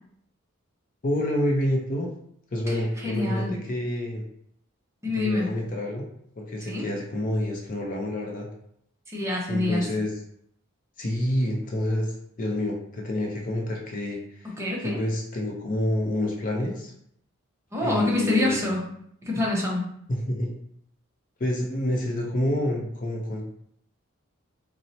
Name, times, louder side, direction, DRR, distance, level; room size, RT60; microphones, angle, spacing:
voice 1, 1.0-2.1 2.5-4.2 5.1-6.0 6.4-8.5 9.5-10.1 11.0-14.5 14.8-16.9 17.8-18.6 20.1-20.5 21.4-23.4, left 1 dB, 40° left, 0 dB, 0.5 m, -28 dB
voice 2, 2.7-3.5 5.0-5.5 6.6-6.9 9.1-9.9 14.4-15.0 17.7-18.8 19.2-19.9, left 2 dB, 15° right, -3 dB, 0.6 m, -26 dB
4.1 x 2.0 x 2.7 m, 0.70 s
head